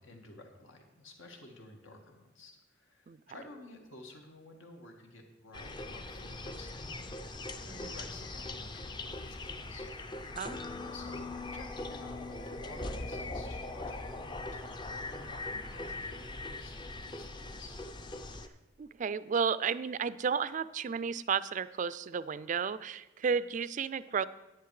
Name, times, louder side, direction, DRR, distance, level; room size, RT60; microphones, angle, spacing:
voice 1, 0.0-7.1 7.6-9.9 10.7-17.8, left 2 dB, 85° left, 3 dB, 1.8 m, -52 dB
sound 1, 5.5-18.5, left 2 dB, 25° left, 0.5 m, -41 dB
voice 2, 18.8-24.2, right 6 dB, 40° right, 16 dB, 0.3 m, -33 dB
10.0 x 9.0 x 4.8 m, 1.0 s
head